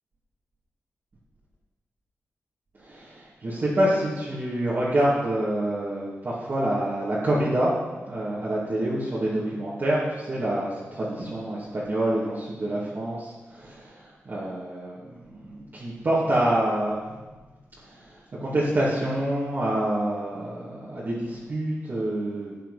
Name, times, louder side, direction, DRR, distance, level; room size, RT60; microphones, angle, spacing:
voice 1, 2.8-17.2 17.8-22.6, right 1 dB, 45° right, -8 dB, 2.4 m, -27 dB
12.5 x 8.0 x 4.2 m, 1.2 s
wide cardioid pair, 110°, 5 cm